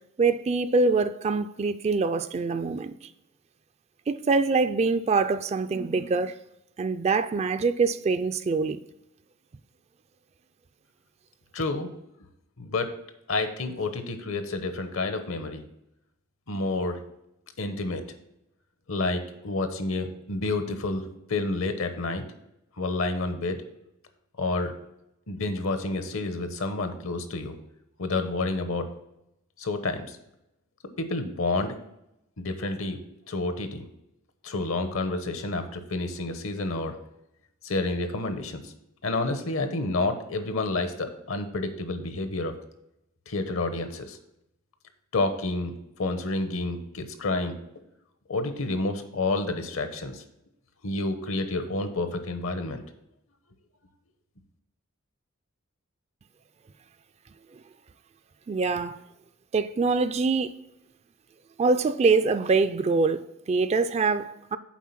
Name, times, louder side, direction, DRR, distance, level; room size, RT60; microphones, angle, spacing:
voice 1, 0.2-2.9 4.1-6.4 6.8-8.8 58.5-59.0 59.5-60.5 61.6-64.6, right 4 dB, 30° right, 0.3 m, -24 dB
voice 2, 11.5-11.9 12.6-12.9 13.3-15.6 16.5-17.0 17.6-18.0 18.9-22.2 22.8-23.6 24.4-24.7 25.3-27.6 28.0-28.9 29.6-30.2 31.0-31.7 32.4-33.0 33.3-33.9 34.4-36.9 37.6-38.7 39.0-42.5 43.3-44.2 45.1-47.6 48.3-50.2 50.8-52.8, left 2 dB, 70° left, 0.9 m, -29 dB
7.3 x 4.7 x 5.8 m
head